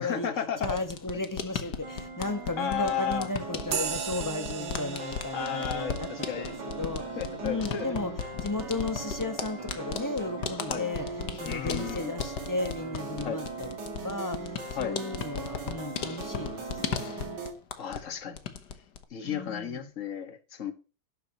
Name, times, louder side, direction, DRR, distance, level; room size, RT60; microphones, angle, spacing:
voice 1, 0.0-0.8 2.6-3.3 5.3-6.6 7.2-7.9 10.7-10.9 11.4-12.1 13.2-13.4 14.7-15.0 17.8-18.4 19.1-20.7, left 8 dB, 45° left, 1.8 m, -33 dB
sound 1, 0.6-18.1 18.4-19.0, left 7 dB, 65° left, 1.7 m, -37 dB
voice 2, 0.6-6.1 6.4-7.1 7.4-8.1 8.4-11.1 11.4-13.7 14.0-17.1 19.2-19.9, left 2 dB, 10° left, 1.1 m, -34 dB
sound 2, 1.8-17.5, right 4 dB, 65° right, 2.7 m, -40 dB
sound 3, 3.7-11.6, right 7 dB, 85° right, 1.9 m, -40 dB
12.5 x 10.5 x 3.0 m
omnidirectional pair, 2.0 m